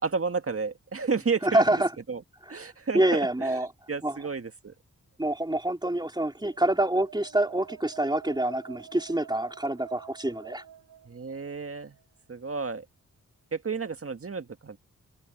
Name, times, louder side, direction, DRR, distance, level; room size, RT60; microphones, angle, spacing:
voice 1, 0.0-1.6 2.1-2.2 2.5-3.5 3.9-4.7 11.1-11.9 12.3-12.9 13.5-14.8, right 5 dB, 40° right, 1.9 m, -31 dB
voice 2, 1.4-1.9 2.5-2.7 2.9-3.7 4.0-4.2 5.2-10.6, right 1 dB, 10° right, 3.7 m, -26 dB
sound 1, 6.3-12.0, right 9 dB, 85° right, 4.5 m, -49 dB
open air
cardioid pair, 45°, 34 cm